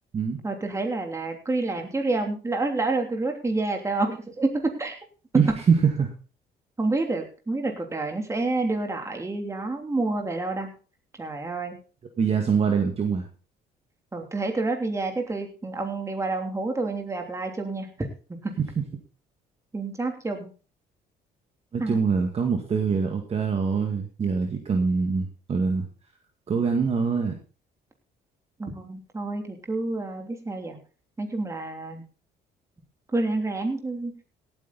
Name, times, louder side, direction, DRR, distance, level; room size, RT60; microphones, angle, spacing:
voice 1, 0.4-5.0 6.8-10.7 11.2-11.8 14.1-18.1 18.4-18.5 19.7-20.5 21.8-22.0 28.6-30.8 31.2-32.0 33.1-34.1, right 2 dB, 15° right, 3 dB, 3.1 m, -28 dB
voice 2, 5.3-6.1 12.2-13.3 21.7-25.9 26.5-27.3, right 5 dB, 35° right, 3 dB, 2.0 m, -24 dB
17.5 x 8.9 x 4.1 m, 0.37 s
cardioid pair, 110°, 17 cm